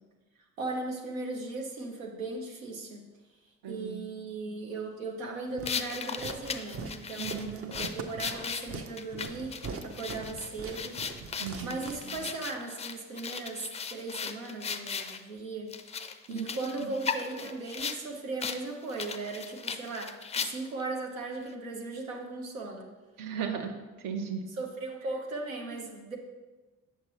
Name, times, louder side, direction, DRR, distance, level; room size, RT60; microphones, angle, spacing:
voice 1, 0.6-3.0 3.7-11.0 11.6-15.7 16.0-22.9 24.6-26.2, right 3 dB, 80° right, 1 dB, 0.7 m, -37 dB
voice 2, 3.6-4.0 7.2-7.6 11.4-11.8 16.3-16.9 23.2-24.4 25.7-25.8, right 6 dB, 55° right, 6 dB, 0.9 m, -37 dB
sound 1, 5.6-15.2 15.7-18.0 18.4-18.6 18.9-20.8, left 6 dB, 15° left, 0.4 m, -37 dB
Walk footsteps, 5.6-12.5, right 4 dB, 35° right, 0.8 m, -42 dB
8.0 x 6.6 x 3.0 m, 1.2 s
figure-of-eight pair, 45°, 40 cm